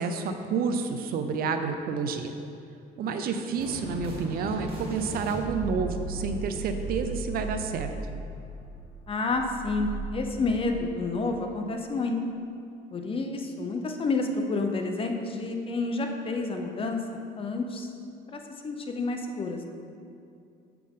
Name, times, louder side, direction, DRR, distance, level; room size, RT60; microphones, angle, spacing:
voice 1, 0.0-2.3 3.0-7.9, right 5 dB, 60° right, 7 dB, 0.6 m, -29 dB
voice 2, 3.0-3.4 9.1-12.2 12.9-17.0 17.4-17.9 18.3-19.6, left 3 dB, 35° left, 4 dB, 0.7 m, -29 dB
sound 1, 3.6-11.1, right 2 dB, 35° right, 1.4 m, -37 dB
7.5 x 5.9 x 3.6 m, 2.5 s
cardioid pair, 110°, 17 cm